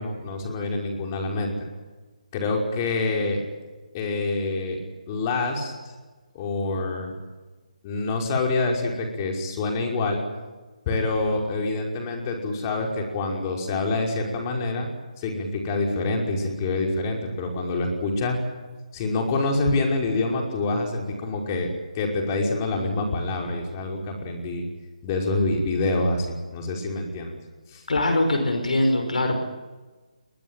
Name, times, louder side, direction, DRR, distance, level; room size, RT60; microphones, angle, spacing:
voice 1, 0.0-1.5 2.3-3.4 3.9-4.8 5.1-5.7 6.3-7.1 7.8-10.2 10.9-14.9 15.2-18.4 18.9-21.7 21.9-24.6 25.0-27.4 27.7-27.8, left 2 dB, 25° left, 1 dB, 5.5 m, -26 dB
voice 2, 27.9-29.5, left 1 dB, 70° left, 5 dB, 5.6 m, -22 dB
23.0 x 21.5 x 9.2 m, 1.3 s
figure-of-eight pair, 150°, 4 cm